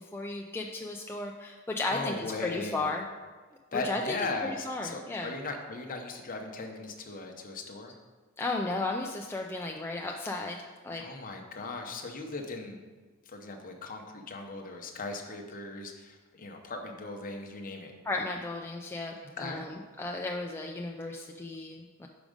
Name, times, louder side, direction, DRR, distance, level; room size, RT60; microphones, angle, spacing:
voice 1, 0.0-3.0 3.7-4.2 4.4-5.3 8.4-10.6 10.8-11.0 18.0-22.1, left 2 dB, 10° left, 0 dB, 0.3 m, -34 dB
voice 2, 1.9-2.9 3.7-7.9 11.0-12.8 13.3-17.9 19.2-19.6, left 3 dB, 40° left, 3 dB, 0.8 m, -38 dB
6.2 x 5.0 x 5.1 m, 1.4 s
head